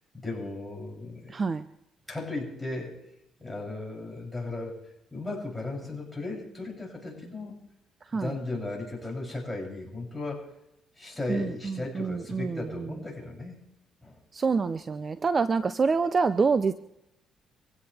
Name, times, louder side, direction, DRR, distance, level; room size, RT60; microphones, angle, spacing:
voice 1, 0.1-1.4 2.1-3.0 3.4-4.8 5.1-7.6 8.1-10.4 11.0-13.5 14.0-14.2, left 2 dB, 5° left, -2 dB, 7.7 m, -36 dB
voice 2, 1.3-1.7 8.1-8.3 11.3-12.9 14.3-16.7, right 4 dB, 35° right, 12 dB, 0.7 m, -26 dB
25.0 x 16.5 x 3.5 m, 0.83 s
cardioid pair, 95°, 0 cm